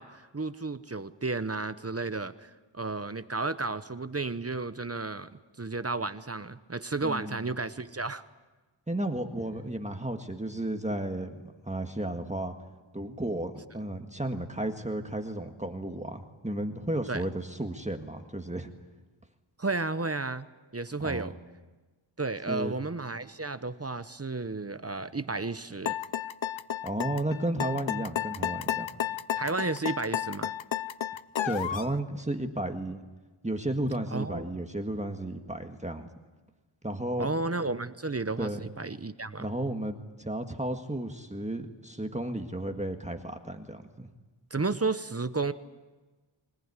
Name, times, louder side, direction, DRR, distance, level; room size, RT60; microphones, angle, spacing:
voice 1, 0.0-5.3 5.6-8.2 17.1-17.2 19.6-20.5 20.7-21.3 22.2-26.0 29.4-30.5 34.1-34.5 37.2-39.5 44.5-45.5, right 3 dB, 30° right, 12 dB, 0.9 m, -32 dB
voice 2, 7.0-7.4 8.9-12.5 12.9-18.7 21.0-21.3 22.5-22.7 26.8-28.9 31.4-33.0 33.4-36.1 36.8-37.3 38.4-38.6 39.4-44.1, right 1 dB, 15° right, 5 dB, 1.7 m, -33 dB
sound 1, 25.8-31.9, left 10 dB, 70° left, 0.7 m, -32 dB
25.0 x 18.5 x 9.8 m, 1.2 s
wide cardioid pair, 75°, 47 cm